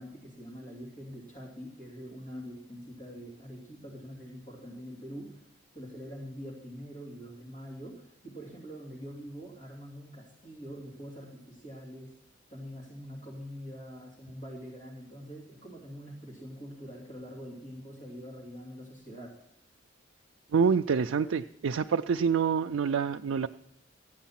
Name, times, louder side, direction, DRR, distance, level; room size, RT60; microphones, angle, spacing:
voice 1, 0.0-5.5 5.7-12.1 12.5-19.4, equal, 40° left, -4 dB, 2.8 m, -44 dB
voice 2, 20.5-23.5, right 6 dB, 85° right, 5 dB, 0.4 m, -26 dB
14.5 x 9.3 x 5.8 m, 0.77 s
head